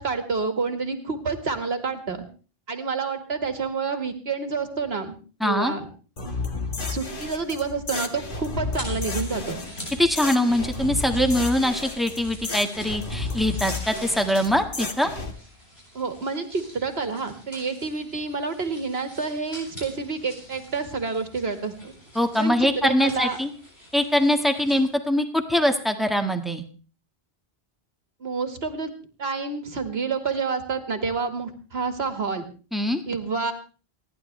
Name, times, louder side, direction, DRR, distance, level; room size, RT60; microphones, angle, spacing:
voice 1, 0.0-2.2 2.7-5.2 5.4-5.9 6.8-9.6 15.9-21.9 22.4-23.4 28.2-28.9 29.2-32.4 33.1-33.5, right 4 dB, 80° right, 7 dB, 2.1 m, -28 dB
voice 2, 5.4-5.7 10.0-15.1 22.1-23.5 23.9-26.6 32.7-33.0, left 1 dB, ahead, 6 dB, 1.6 m, -23 dB
sound 1, 6.2-15.3, left 3 dB, 55° left, 1.8 m, -32 dB
sound 2, 8.7-24.9, equal, 80° left, 7.1 m, -45 dB
28.5 x 11.0 x 3.3 m, 0.37 s
omnidirectional pair, 1.0 m